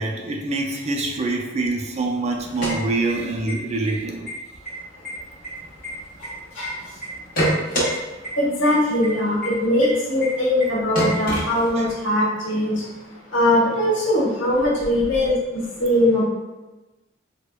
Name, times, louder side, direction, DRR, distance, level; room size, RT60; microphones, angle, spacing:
voice 1, 0.0-4.3 11.8-11.9, right 2 dB, 35° right, 2 dB, 0.4 m, -25 dB
sound 1, 2.4-3.5 3.8-3.9 4.3-4.7 5.0-6.7 7.0-7.9 8.2-8.3 8.6-8.7 9.0-9.1 9.4-9.5 9.8-9.9 10.2-10.3 10.6-10.7 10.9-12.0, equal, 50° left, 1.1 m, -25 dB
voice 2, 6.2-7.0 8.3-12.9 13.3-16.2, left 1 dB, 85° left, -5 dB, 1.0 m, -21 dB
4.4 x 2.1 x 2.3 m, 1.1 s
head